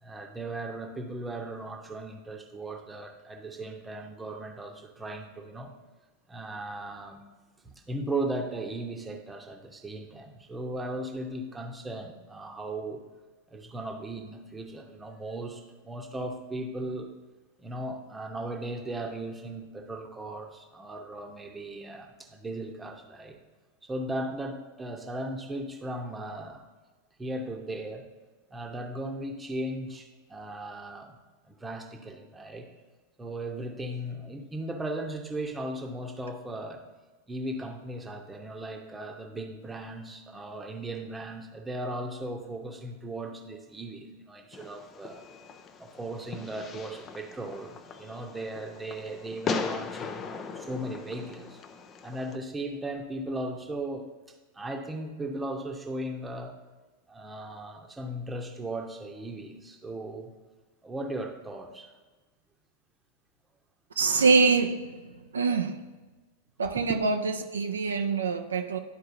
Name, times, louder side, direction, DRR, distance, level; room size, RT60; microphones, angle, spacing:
voice 1, 0.0-5.7 6.3-7.2 7.6-13.0 13.5-17.1 17.6-23.4 23.8-26.6 27.2-28.0 28.5-31.2 31.5-32.7 33.2-36.8 37.3-45.2 45.8-51.6 52.0-54.1 54.5-56.5 57.1-60.3 60.8-61.9 66.8-67.0, right 1 dB, 10° right, 3 dB, 1.0 m, -37 dB
Fireworks, 44.5-52.4, left 5 dB, 25° left, 0.5 m, -39 dB
voice 2, 64.0-64.8 65.3-65.8 66.6-68.8, right 4 dB, 70° right, 5 dB, 0.5 m, -24 dB
12.0 x 4.6 x 2.6 m, 1.3 s
figure-of-eight pair, 90°, 0 cm